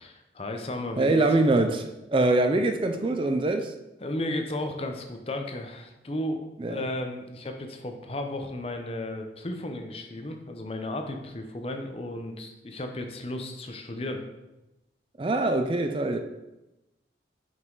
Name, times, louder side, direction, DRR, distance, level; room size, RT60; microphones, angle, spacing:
voice 1, 0.0-1.2 4.0-14.2, left 1 dB, 35° left, 0.6 m, -34 dB
voice 2, 1.0-3.7 6.6-6.8 15.2-16.2, right 2 dB, 30° right, 0.4 m, -24 dB
5.7 x 5.4 x 3.9 m
head